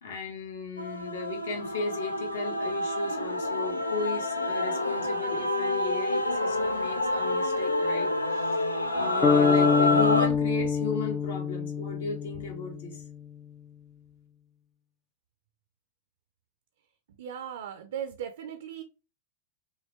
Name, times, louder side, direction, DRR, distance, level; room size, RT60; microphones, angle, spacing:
voice 1, 0.0-8.6 8.9-13.0, left 4 dB, 60° left, 1.5 m, -36 dB
Male singing / Female singing / Musical instrument, 0.8-10.3, left 2 dB, 85° left, 0.6 m, -28 dB
sound 1, 9.2-13.2, left 6 dB, 25° left, 0.4 m, -26 dB
voice 2, 17.2-18.8, right 9 dB, 60° right, 0.5 m, -37 dB
5.5 x 2.8 x 3.3 m
figure-of-eight pair, 90°, 0 cm